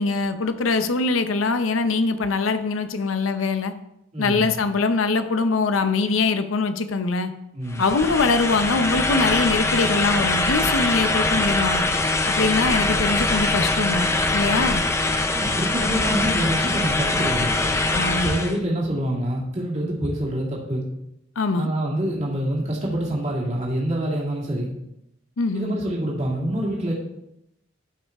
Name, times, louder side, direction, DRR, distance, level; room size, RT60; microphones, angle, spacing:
voice 1, 0.0-3.7 4.2-7.3 7.8-11.8 12.3-14.8 17.9-18.4 21.4-21.7 25.4-25.7, left 3 dB, 85° left, 10 dB, 0.7 m, -23 dB
voice 2, 4.1-4.5 7.5-7.8 15.3-17.7 18.2-20.8 21.6-24.7 25.5-26.9, right 1 dB, 35° right, -4 dB, 2.2 m, -26 dB
sound 1, 7.7-18.6, left 2 dB, 15° left, 0.5 m, -23 dB
11.5 x 5.5 x 3.6 m, 0.84 s
head